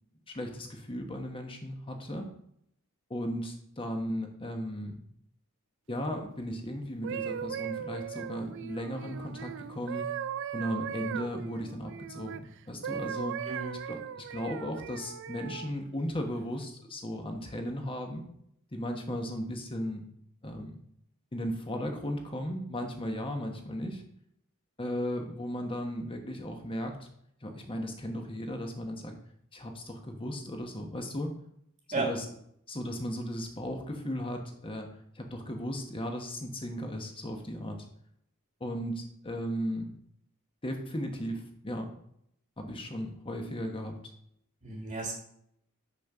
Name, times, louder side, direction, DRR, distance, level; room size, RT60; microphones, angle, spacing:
voice 1, 0.3-2.3 3.1-5.0 5.9-10.1 10.5-13.4 13.8-18.2 18.7-20.0 20.4-20.8 21.3-24.0 24.8-27.1 27.4-29.1 29.5-31.3 31.9-32.2 32.7-37.8 38.6-39.9 40.6-41.9 42.6-44.1, equal, 25° left, 3 dB, 1.2 m, -36 dB
sound 1, 6.8-12.4 12.8-15.7 16.4-16.6, right 8 dB, 55° right, 0.4 m, -38 dB
voice 2, 13.5-13.8 31.9-32.1 44.6-45.1, right 3 dB, 30° right, 1 dB, 1.5 m, -33 dB
6.1 x 5.2 x 6.0 m, 0.73 s
head